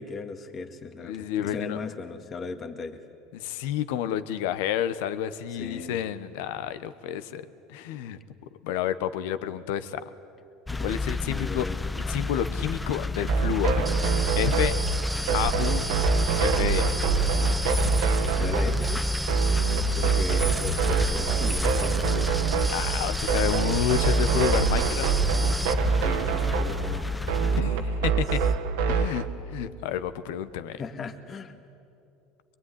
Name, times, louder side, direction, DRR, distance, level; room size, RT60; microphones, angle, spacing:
voice 1, 0.0-3.0 5.6-6.0 10.7-10.9 11.3-11.8 18.4-19.0 20.0-22.3 26.0-27.6 30.7-31.6, left 4 dB, 35° left, 6 dB, 2.0 m, -37 dB
voice 2, 1.0-1.8 3.3-8.2 8.6-10.0 10.8-13.9 14.4-14.7 15.3-15.8 16.4-16.9 22.7-25.2 27.5-28.4 28.9-30.8, left 10 dB, 75° left, 13 dB, 1.2 m, -30 dB
sound 1, 10.7-27.6, left 3 dB, 10° left, 0.8 m, -31 dB
sound 2, 13.3-29.2, right 5 dB, 80° right, 1.6 m, -25 dB
sound 3, 13.9-25.7, right 2 dB, 10° right, 1.3 m, -34 dB
23.5 x 22.5 x 9.9 m, 2.6 s
hypercardioid pair, 90°, 0 cm